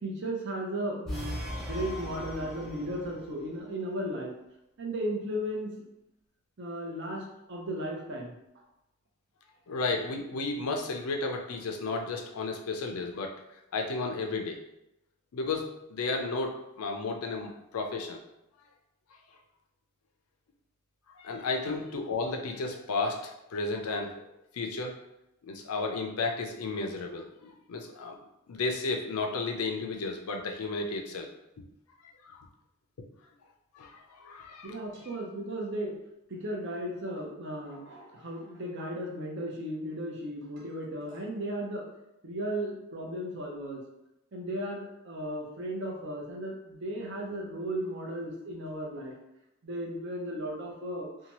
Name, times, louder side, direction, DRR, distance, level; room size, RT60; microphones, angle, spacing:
voice 1, 0.0-4.3 4.8-5.7 6.6-8.4 21.7-21.8 34.6-35.9 36.3-41.9 42.2-43.8 44.3-49.1 49.6-51.3, right 1 dB, 55° right, -1 dB, 0.6 m, -35 dB
sound 1, 1.1-3.3, left 1 dB, ahead, 0.6 m, -38 dB
voice 2, 9.7-13.3 13.7-14.6 15.3-18.2 21.2-24.3 24.5-25.0 25.4-28.2 28.5-31.3 32.2-32.4 33.7-34.8, left 3 dB, 85° left, 3 dB, 0.5 m, -33 dB
2.8 x 2.2 x 2.9 m, 0.87 s
head